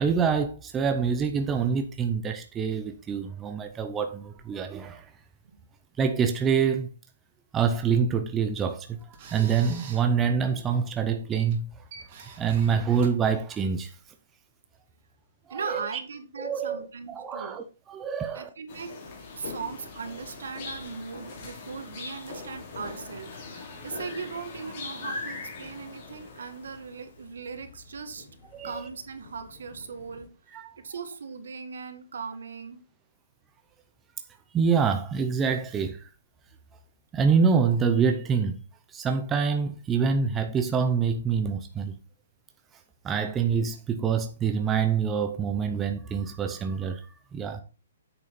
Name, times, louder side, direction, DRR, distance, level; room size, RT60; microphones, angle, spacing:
voice 1, 0.0-5.1 6.0-6.9 7.5-11.6 12.4-13.9 15.5-15.8 16.4-18.5 28.5-28.7 30.5-30.7 34.5-36.0 37.1-38.6 38.9-41.9 43.0-47.0 47.3-47.6, right 6 dB, 10° right, 0.6 m, -26 dB
sound 1, 8.3-14.0, right 5 dB, 25° right, 2.6 m, -48 dB
voice 2, 15.5-17.6 18.3-19.0 19.3-28.3 28.6-30.3 30.8-32.8, right 5 dB, 70° right, 2.1 m, -38 dB
sound 2, 18.7-27.1, left 3 dB, 35° left, 2.9 m, -41 dB
sound 3, 19.4-30.3, left 5 dB, 60° left, 3.0 m, -51 dB
8.5 x 6.8 x 4.3 m
hypercardioid pair, 175°, 0 cm